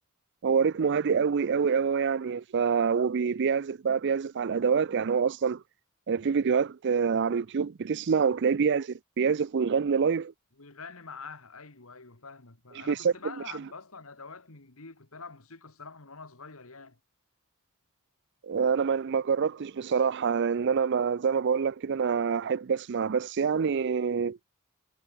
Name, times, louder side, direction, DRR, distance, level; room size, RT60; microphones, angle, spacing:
voice 1, 0.4-5.6 6.1-10.3 12.9-13.1 18.4-24.4, right 6 dB, 50° right, 0.4 m, -26 dB
voice 2, 10.6-17.0, left 4 dB, 65° left, 2.2 m, -46 dB
head